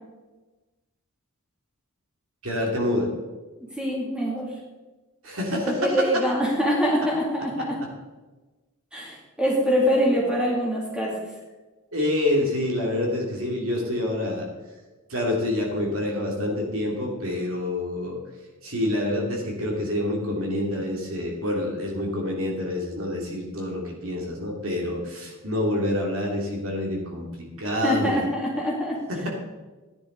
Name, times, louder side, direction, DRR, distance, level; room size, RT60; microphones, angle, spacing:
voice 1, 2.4-3.1 5.2-6.2 7.6-7.7 11.9-14.5 15.1-18.2 18.6-28.2 29.1-29.3, left 1 dB, 65° right, 0 dB, 2.7 m, -27 dB
voice 2, 3.8-4.5 5.6-7.8 8.9-11.1 27.8-29.0, equal, 5° right, -3 dB, 2.5 m, -24 dB
14.0 x 10.5 x 3.9 m, 1.2 s
head